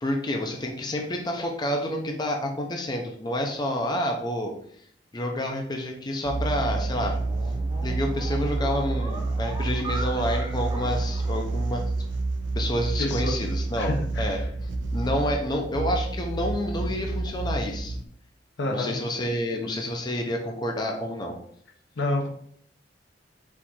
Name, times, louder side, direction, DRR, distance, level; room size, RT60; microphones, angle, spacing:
voice 1, 0.0-4.5 5.1-7.2 7.8-11.9 12.6-14.5 14.9-18.0 18.7-21.4, left 1 dB, 25° left, 2 dB, 0.5 m, -29 dB
sound 1, 6.2-18.1, right 3 dB, 75° right, 0.5 m, -29 dB
sound 2, 6.5-12.0, right 1 dB, 25° right, 0.9 m, -40 dB
voice 2, 13.0-13.4 13.8-14.4 18.6-19.0 22.0-22.3, left 2 dB, 70° left, 3 dB, 0.8 m, -28 dB
4.4 x 2.5 x 4.2 m, 0.63 s
head